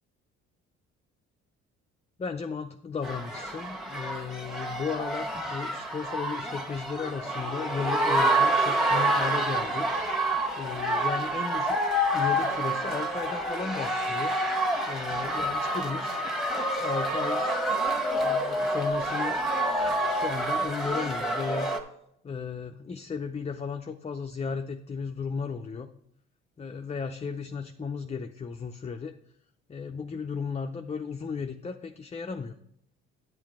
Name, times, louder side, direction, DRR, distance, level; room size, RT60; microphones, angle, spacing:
voice 1, 2.2-9.9 10.6-14.4 14.9-16.2 16.7-17.5 18.1-19.4 19.8-21.7 22.2-25.9 26.6-29.2 29.7-32.5, left 5 dB, 20° left, 6 dB, 0.5 m, -35 dB
sound 1, 3.0-21.8, right 1 dB, ahead, 1.4 m, -28 dB
8.7 x 8.0 x 3.6 m, 0.75 s
hypercardioid pair, 55°, 33 cm